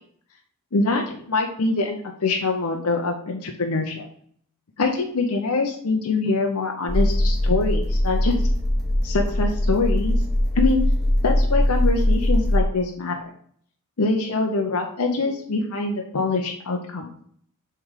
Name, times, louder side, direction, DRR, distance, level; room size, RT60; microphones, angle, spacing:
voice 1, 0.7-4.1 4.8-8.5 9.0-10.1 10.5-10.8 11.2-13.3 14.0-17.1, left 3 dB, 80° left, 2 dB, 0.8 m, -24 dB
sound 1, 6.9-12.6, left 1 dB, ahead, 1.3 m, -21 dB
7.3 x 3.4 x 4.8 m, 0.62 s
head